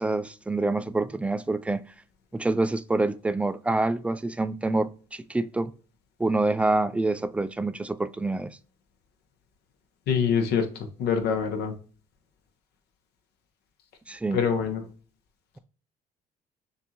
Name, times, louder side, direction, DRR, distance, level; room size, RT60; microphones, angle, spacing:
voice 1, 0.0-1.8 2.3-5.7 6.2-8.6 14.1-14.4, right 2 dB, 5° right, 0.3 m, -26 dB
voice 2, 10.1-10.7 11.0-11.7 14.3-14.8, left 6 dB, 75° left, 1.2 m, -24 dB
6.9 x 2.6 x 2.9 m
cardioid pair, 110°, 17 cm